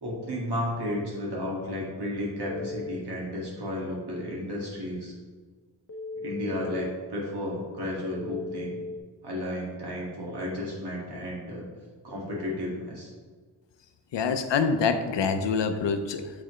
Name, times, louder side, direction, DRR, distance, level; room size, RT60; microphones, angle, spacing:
voice 1, 0.0-5.1 6.1-8.8 9.2-11.7 12.0-13.1, left 1 dB, 60° right, -4 dB, 2.0 m, -33 dB
Telephone, 2.4-3.0 5.9-6.9 8.1-9.0, left 2 dB, 30° left, 0.7 m, -37 dB
voice 2, 14.1-16.3, left 5 dB, 70° left, 8 dB, 0.6 m, -26 dB
8.8 x 4.2 x 3.1 m, 1.5 s
wide cardioid pair, 145°, 44 cm